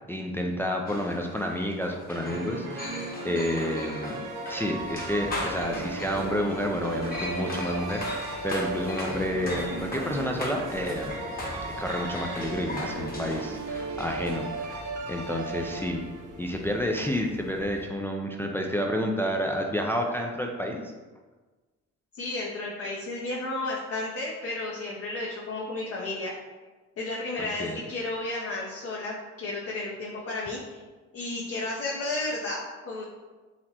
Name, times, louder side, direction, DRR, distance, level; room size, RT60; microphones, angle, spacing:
voice 1, 0.1-4.2 4.5-11.2 11.8-14.8 15.1-16.0 16.3-20.9 27.4-27.8, equal, 10° left, 1 dB, 0.3 m, -30 dB
sound 1, 0.9-14.8, left 1 dB, 30° left, 1.0 m, -39 dB
sound 2, 2.1-16.4, right 3 dB, 80° right, 0.6 m, -36 dB
sound 3, 4.8-17.9, right 1 dB, 40° right, 0.9 m, -47 dB
voice 2, 22.1-26.3 27.0-30.8 31.1-33.0, left 2 dB, 50° left, -4 dB, 0.7 m, -33 dB
4.1 x 2.9 x 2.8 m, 1.3 s
cardioid pair, 90°, 30 cm